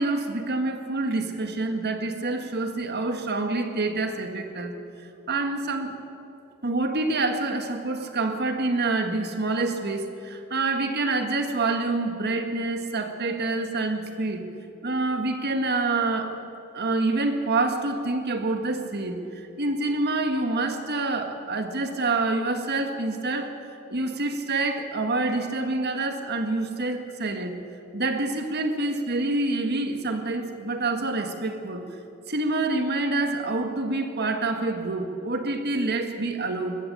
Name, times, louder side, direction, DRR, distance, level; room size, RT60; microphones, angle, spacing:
voice 1, 0.0-4.8 5.0-6.0 6.6-14.5 14.8-16.4 16.7-23.6 23.9-27.6 27.9-31.9 32.3-36.8, right 2 dB, 50° right, 6 dB, 1.8 m, -27 dB
22.0 x 14.0 x 8.7 m, 2.8 s
head